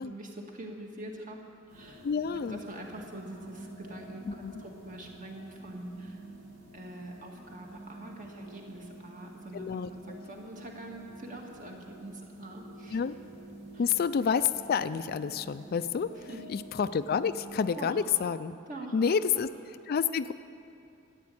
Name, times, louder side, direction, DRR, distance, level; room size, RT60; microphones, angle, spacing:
voice 1, 0.0-1.4 1.7-2.0 2.4-6.2 6.7-13.0 13.7-13.8 16.3-16.4 17.7-18.0 18.7-19.2, right 1 dB, 40° right, 0 dB, 2.0 m, -44 dB
sound 1, 1.7-18.1, right 1 dB, 80° right, 4.5 m, -49 dB
voice 2, 2.0-2.6 4.3-4.5 9.5-10.2 12.9-13.2 13.8-16.1 16.5-18.5 18.9-19.5 19.9-20.3, left 6 dB, 45° left, 13 dB, 0.3 m, -29 dB
13.5 x 9.6 x 8.5 m, 2.6 s
head